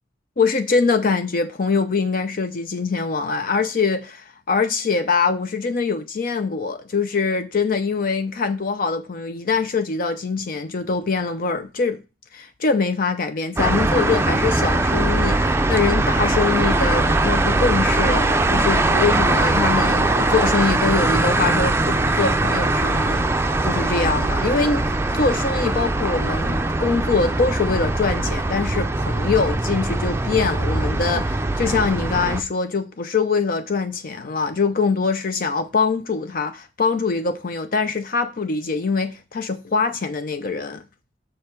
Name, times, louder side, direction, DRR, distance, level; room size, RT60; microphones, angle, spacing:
voice 1, 0.4-12.0 12.3-40.8, left 4 dB, 50° left, 0.5 m, -23 dB
sound 1, 13.6-32.4, right 2 dB, 15° right, 0.5 m, -21 dB
6.6 x 5.4 x 4.4 m
head